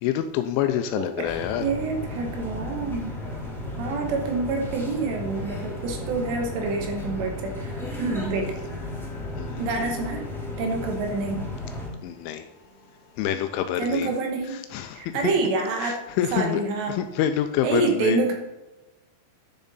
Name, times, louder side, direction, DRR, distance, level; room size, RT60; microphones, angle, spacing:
voice 1, 0.0-1.7 8.4-8.5 9.4-9.6 12.0-12.5 13.2-14.1 14.5-15.3 15.8-16.6 16.9-18.2, left 10 dB, 85° left, 8 dB, 2.8 m, -27 dB
voice 2, 1.0-3.2 3.8-8.5 9.6-10.2 10.6-11.5 13.8-14.6 14.9-16.0 16.3-17.0 17.6-18.3, right 3 dB, 70° right, 2 dB, 3.1 m, -27 dB
sound 1, 1.2-11.9, left 2 dB, ahead, 2.1 m, -34 dB
sound 2, 3.9-15.5, left 1 dB, 25° left, 2.3 m, -47 dB
10.5 x 7.0 x 4.1 m, 1.0 s
omnidirectional pair, 5.8 m